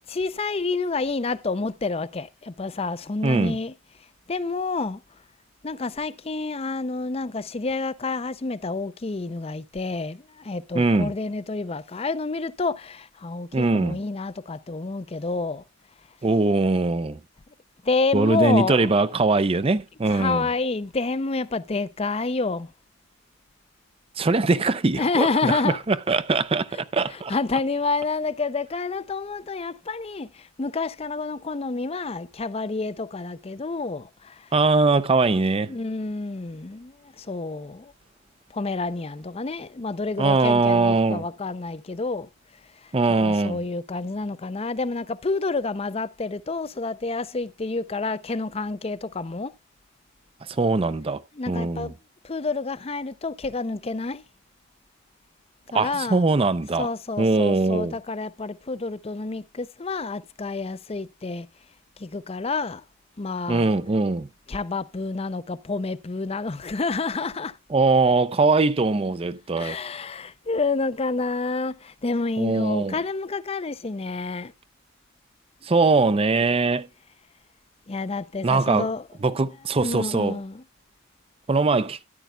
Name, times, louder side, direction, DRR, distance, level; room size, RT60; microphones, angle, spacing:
voice 1, 0.1-3.7 4.3-5.0 5.6-15.6 17.8-18.9 20.0-22.7 25.0-25.8 27.1-34.5 35.7-37.9 38.5-42.3 42.8-42.9 43.2-49.5 51.4-51.9 52.2-54.2 55.7-56.2 56.8-61.5 62.0-62.8 63.2-63.7 64.5-67.6 69.6-74.5 77.9-79.0 79.8-80.6, left 3 dB, 30° left, 0.5 m, -29 dB
voice 2, 3.2-3.6 10.7-11.1 13.5-14.0 16.2-17.2 18.1-20.5 24.2-25.6 25.9-27.3 34.5-35.8 40.2-41.2 42.9-43.6 50.5-51.9 55.7-56.9 57.2-58.0 63.5-64.3 67.7-69.8 72.4-72.9 75.6-76.9 78.4-78.9 79.2-80.4 81.5-82.0, right 3 dB, 25° right, 0.5 m, -21 dB
13.5 x 10.5 x 2.3 m
head